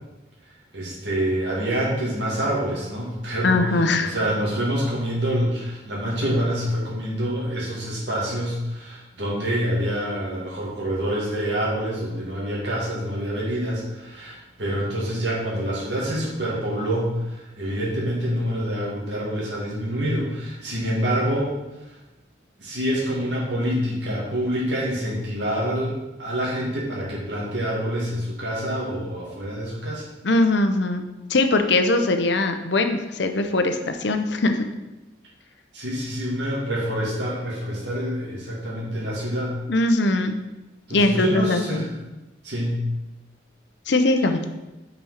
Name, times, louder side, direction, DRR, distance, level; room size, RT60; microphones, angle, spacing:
voice 1, 0.7-21.5 22.6-30.0 35.7-39.5 40.9-41.9 42.4-42.8, equal, 70° right, -5 dB, 2.4 m, -26 dB
voice 2, 3.4-4.1 30.2-31.0 31.3-34.7 39.7-40.4 40.9-41.9 43.9-44.5, left 2 dB, 70° left, 7 dB, 0.7 m, -21 dB
5.6 x 5.3 x 5.8 m, 1.0 s
head